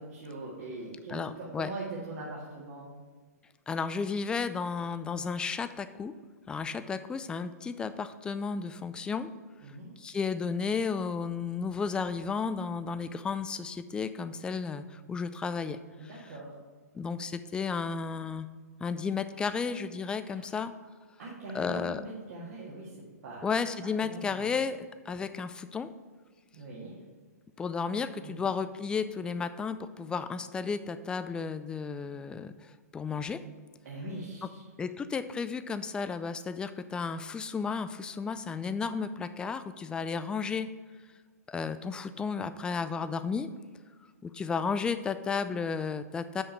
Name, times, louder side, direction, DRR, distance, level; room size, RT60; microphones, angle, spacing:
voice 1, 0.0-2.9 9.6-9.9 16.0-16.6 20.3-20.5 21.2-23.0 23.2-23.5 23.8-24.5 26.5-27.0 28.2-28.5 33.8-34.6, right 2 dB, 60° right, -6 dB, 1.9 m, -42 dB
voice 2, 1.1-1.7 3.7-6.1 6.5-9.3 10.0-15.8 16.9-18.5 18.8-20.7 21.5-22.0 23.4-25.9 27.6-33.4 34.8-40.7 41.5-43.5 44.2-46.4, left 5 dB, 10° left, 11 dB, 0.3 m, -33 dB
6.4 x 5.0 x 5.8 m, 1.5 s
hypercardioid pair, 130°, 9 cm